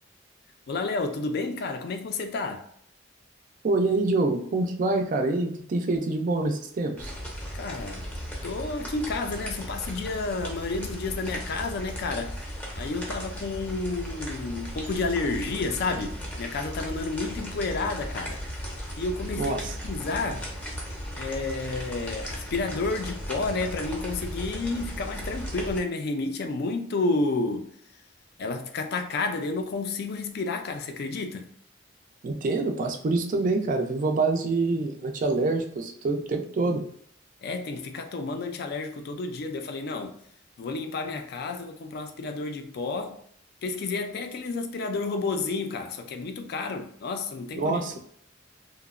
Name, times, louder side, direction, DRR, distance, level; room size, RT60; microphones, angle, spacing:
voice 1, 0.7-2.7 7.5-8.1 8.4-18.6 19.0-20.5 21.1-27.7 28.4-31.5 37.4-40.2 40.6-43.2 43.6-48.0, left 3 dB, 55° left, 0.3 m, -31 dB
voice 2, 3.6-7.1 19.4-19.7 32.2-36.8 47.5-47.9, right 3 dB, 40° right, 0.3 m, -26 dB
sound 1, 7.0-25.8, equal, 10° left, 0.6 m, -36 dB
2.7 x 2.0 x 2.4 m
head